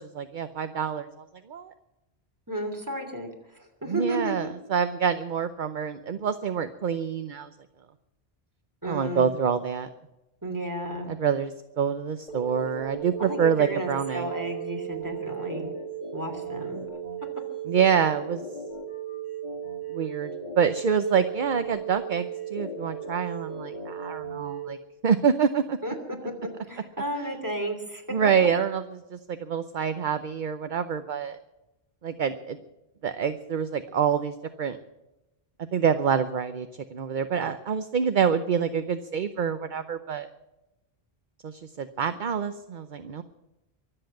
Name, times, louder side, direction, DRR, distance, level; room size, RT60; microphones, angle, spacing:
voice 1, 0.0-1.7 3.9-7.5 8.8-9.9 11.1-14.3 17.7-18.4 19.9-20.3 20.6-24.8 25.0-25.8 28.1-28.8 29.1-31.4 32.0-32.6 33.0-34.8 35.7-40.3 41.4-43.2, right 7 dB, 55° right, 10 dB, 0.9 m, -26 dB
voice 2, 2.5-4.5 8.8-9.2 10.4-11.1 13.2-15.7 16.1-16.8 25.8-28.0, right 1 dB, 20° right, 3 dB, 3.0 m, -33 dB
sound 1, 12.3-24.7, right 7 dB, 45° left, 2.2 m, -36 dB
24.0 x 7.9 x 7.7 m, 0.96 s
omnidirectional pair, 1.0 m